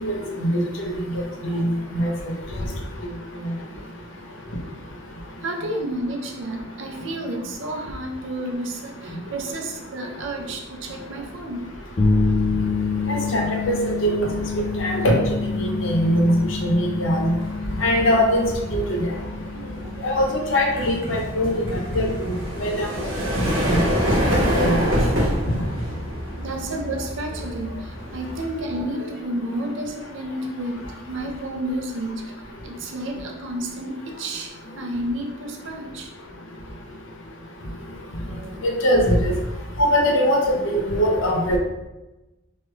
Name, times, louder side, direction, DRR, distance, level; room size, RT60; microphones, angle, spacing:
voice 1, 1.4-2.1 13.1-14.3 14.8-15.2 15.6-16.3 16.6-17.3 17.8-18.4 18.7-19.1 20.0-22.1 22.6-22.9 23.6-24.3 24.6-24.8 38.6-39.3 39.8-41.6, equal, 70° left, 0 dB, 0.6 m, -21 dB
voice 2, 5.4-11.6 12.0-12.1 13.1-13.4 14.8-14.9 17.4-17.5 18.9-19.2 19.5-20.2 22.9-23.0 26.4-30.8 31.1-32.2 32.6-36.1 38.2-38.6, right 1 dB, 70° right, 2 dB, 0.5 m, -31 dB
sound 1, 11.5-11.8 12.1-28.9, equal, 90° right, 0.9 m, -27 dB
sound 2, 12.0-27.9, left 4 dB, 30° left, 0.3 m, -29 dB
3.2 x 2.3 x 3.0 m, 1.0 s
head